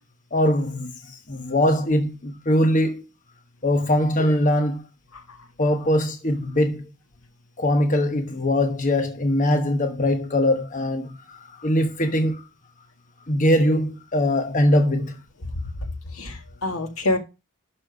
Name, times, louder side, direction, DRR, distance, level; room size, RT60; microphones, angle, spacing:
voice 1, 0.3-3.0 3.6-4.8 5.6-6.9 7.6-12.4 13.3-15.2, left 1 dB, 40° left, 1.1 m, -22 dB
voice 2, 15.5-17.2, left 2 dB, 80° left, 2.0 m, -28 dB
12.0 x 4.3 x 5.1 m
head